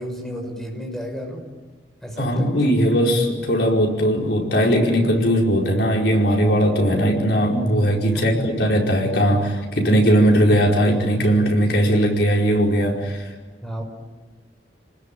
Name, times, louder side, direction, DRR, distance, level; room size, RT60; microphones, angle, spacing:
voice 1, 0.0-1.4 2.0-2.6 8.1-8.4 13.6-13.8, equal, 5° left, 1 dB, 6.2 m, -32 dB
voice 2, 2.2-13.2, equal, 70° left, 0 dB, 5.1 m, -19 dB
29.5 x 20.5 x 9.1 m, 1.3 s
head